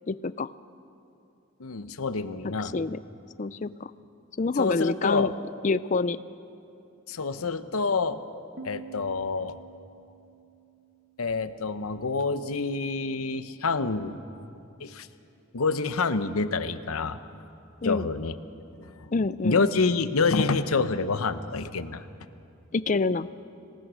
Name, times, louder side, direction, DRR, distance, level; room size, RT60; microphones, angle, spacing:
voice 1, 0.1-0.5 2.6-3.0 3.4-3.9 4.4-5.3 5.6-6.2 17.8-18.1 19.1-19.6 22.7-23.3, left 3 dB, 35° left, 16 dB, 0.4 m, -27 dB
voice 2, 1.6-2.7 4.6-5.3 7.1-8.2 8.6-9.6 11.2-14.2 14.8-15.1 15.5-17.2 17.8-18.3 18.8-19.1 19.4-22.0, left 4 dB, 90° left, 12 dB, 0.8 m, -27 dB
Piano, 8.6-12.0, right 5 dB, 50° right, 1.2 m, -48 dB
26.0 x 18.5 x 6.3 m, 2.7 s
head